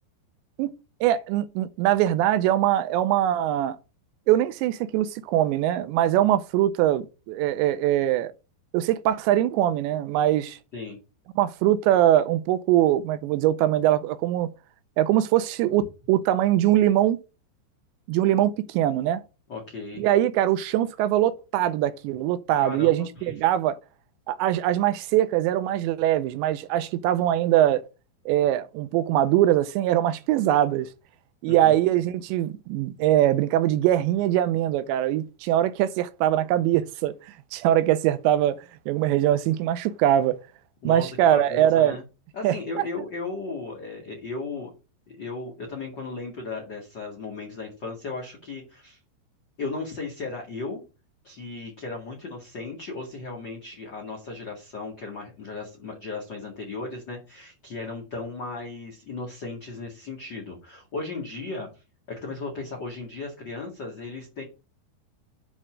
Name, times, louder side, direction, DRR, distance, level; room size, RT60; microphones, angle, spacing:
voice 1, 1.0-3.8 4.3-8.3 8.7-10.6 11.4-14.5 15.0-17.2 18.1-19.2 20.0-23.8 24.3-27.8 28.3-30.9 31.4-37.2 37.5-38.6 38.9-40.4 40.8-42.0 42.4-42.9, right 12 dB, 85° right, 2.7 m, -22 dB
voice 2, 19.5-20.0 22.6-23.3 31.5-31.8 40.8-42.0 42.3-44.7 45.1-49.0 49.6-50.8 51.2-61.8 62.2-64.4, left 3 dB, 40° left, 1.6 m, -36 dB
10.0 x 4.3 x 6.2 m
omnidirectional pair, 5.3 m